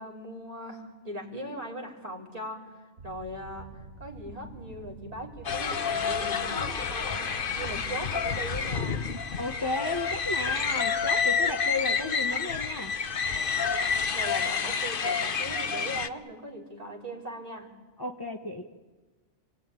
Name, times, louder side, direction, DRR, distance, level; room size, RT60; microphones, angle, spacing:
voice 1, 0.0-3.7 4.0-9.0 14.1-17.7, right 1 dB, 30° right, 1 dB, 3.7 m, -39 dB
sound 1, 3.0-13.1, right 3 dB, 65° right, 1.9 m, -48 dB
sound 2, 5.4-16.1, left 6 dB, 50° left, 1.1 m, -29 dB
voice 2, 9.4-12.9 18.0-18.8, left 2 dB, 20° left, 3 dB, 1.1 m, -33 dB
28.5 x 20.5 x 9.0 m, 1.3 s
omnidirectional pair, 1.2 m